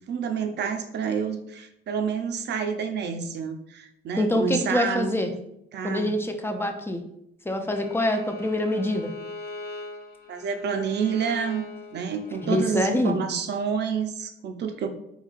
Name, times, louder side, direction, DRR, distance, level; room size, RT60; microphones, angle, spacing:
voice 1, 0.1-5.3 5.7-6.1 10.3-11.7 11.9-14.9, right 6 dB, 60° right, 6 dB, 0.5 m, -29 dB
voice 2, 4.2-5.3 5.8-7.0 7.5-9.1 12.4-13.2, left 1 dB, 10° left, 5 dB, 0.4 m, -25 dB
Bowed string instrument, 7.7-12.7, left 2 dB, 50° left, 0.7 m, -40 dB
3.9 x 2.8 x 2.4 m, 0.78 s
cardioid pair, 90°, 20 cm